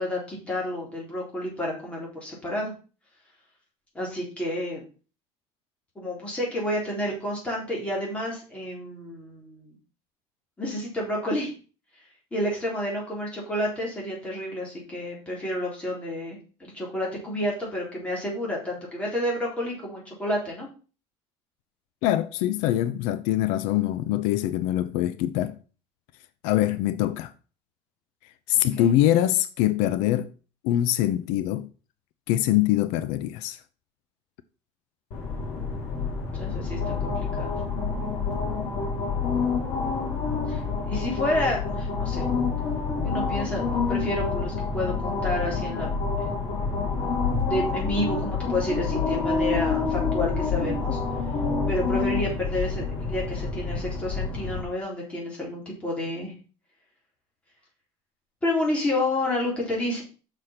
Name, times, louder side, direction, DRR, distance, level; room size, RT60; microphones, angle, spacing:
voice 1, 0.0-2.7 3.9-4.8 6.0-9.8 10.6-11.5 12.3-20.7 28.5-29.0 36.4-37.6 39.8-42.3 43.0-45.9 46.2-46.3 47.5-51.0 51.7-56.3 58.4-60.0, left 1 dB, 10° left, 3.6 m, -30 dB
voice 2, 22.0-25.5 26.4-27.3 28.5-30.3 30.6-31.7 32.3-33.6, left 13 dB, 90° left, 0.7 m, -23 dB
sound 1, 35.1-54.6, left 4 dB, 60° left, 3.4 m, -28 dB
6.7 x 6.2 x 5.7 m
cardioid pair, 180°, 12 cm